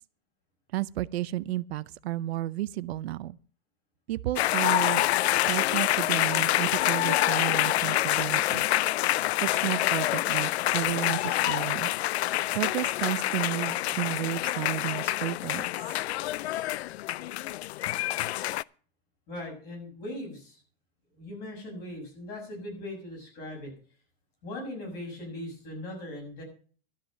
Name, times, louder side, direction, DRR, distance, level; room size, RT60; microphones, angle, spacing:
voice 1, 0.7-3.4 4.1-5.0 5.5-8.7 9.4-11.9 12.5-15.6, right 14 dB, 80° right, 0.6 m, -32 dB
sound 1, 4.4-18.6, left 15 dB, 90° left, 0.5 m, -27 dB
voice 2, 19.3-20.6 21.1-23.7 24.4-26.4, left 1 dB, 30° left, 6.6 m, -39 dB
12.5 x 8.4 x 6.2 m
supercardioid pair, 165°, 31 cm